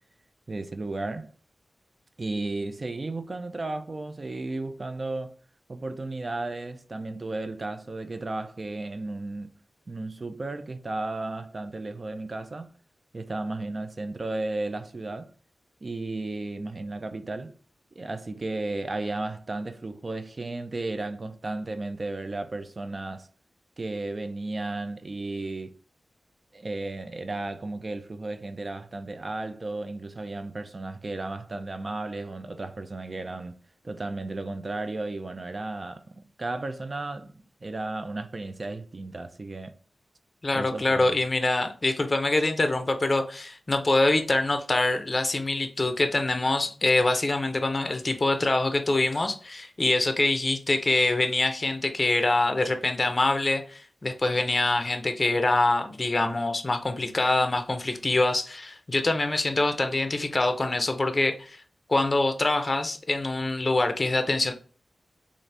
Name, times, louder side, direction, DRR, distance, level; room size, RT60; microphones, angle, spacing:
voice 1, 0.5-1.3 2.2-5.4 5.7-9.5 9.9-12.7 13.1-15.3 15.8-17.5 17.9-23.3 23.8-25.7 26.5-33.6 33.8-39.7 40.5-41.1, right 2 dB, 40° right, 0.4 m, -34 dB
voice 2, 40.4-61.6 61.9-64.5, left 2 dB, 30° left, 0.5 m, -25 dB
4.0 x 2.5 x 3.2 m
wide cardioid pair, 110°, 0 cm